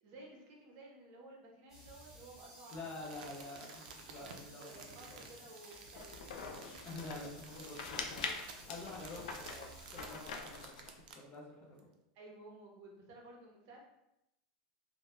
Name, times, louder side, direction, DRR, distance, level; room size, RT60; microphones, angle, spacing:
voice 1, 0.0-3.5 4.2-6.9 12.1-13.8, right 2 dB, 50° right, -1 dB, 0.7 m, -55 dB
sound 1, 1.7-10.3, right 1 dB, 10° right, 1.0 m, -57 dB
voice 2, 2.7-5.5 6.8-11.9, left 2 dB, 30° left, -1 dB, 0.5 m, -49 dB
Crumpling crinkling, 2.7-11.3 11.8-11.9, right 5 dB, 80° right, 0.4 m, -54 dB
sound 2, 5.9-11.0, left 5 dB, 85° left, 0.3 m, -45 dB
2.2 x 2.1 x 3.0 m, 0.86 s
supercardioid pair, 145°, 4 cm